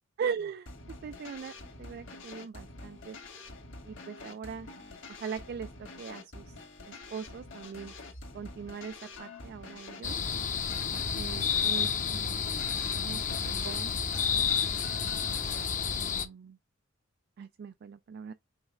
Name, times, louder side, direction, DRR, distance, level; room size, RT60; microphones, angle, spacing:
voice 1, 0.2-0.7 1.0-1.5 1.8-3.2 3.9-4.7 5.2-5.7 6.0-6.4 6.9-7.9 8.3-8.9 9.2-10.2 10.9-12.4 13.0-13.9 14.3-15.1 16.0-16.6 17.4-18.3, right 6 dB, 50° right, 0.3 m, -40 dB
sound 1, 0.7-15.8, left 3 dB, 65° left, 1.7 m, -47 dB
sound 2, 10.0-16.3, left 7 dB, 40° left, 0.7 m, -30 dB
5.6 x 2.2 x 4.3 m
head